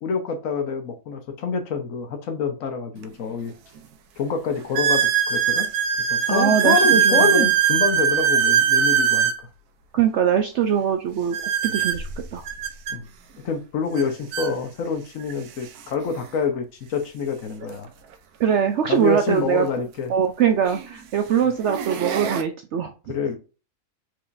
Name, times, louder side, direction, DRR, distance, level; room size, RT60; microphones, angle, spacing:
voice 1, 0.0-3.5 4.2-5.7 6.1-9.3 12.9-13.1 13.4-17.9 18.9-20.1 23.1-23.4, left 5 dB, 60° left, 1.2 m, -26 dB
sound 1, 3.0-3.1 3.8-3.9 4.7-9.4 11.3-13.0 14.0-14.1 14.3-14.5 15.3-15.4 17.6-17.7 19.8-19.9 20.6-20.9 21.5-22.4, right 8 dB, 90° right, 1.2 m, -21 dB
voice 2, 6.3-7.5 9.9-12.4 18.4-19.7 20.1-22.9, right 8 dB, 70° right, 0.7 m, -22 dB
4.6 x 3.8 x 2.5 m
omnidirectional pair, 1.6 m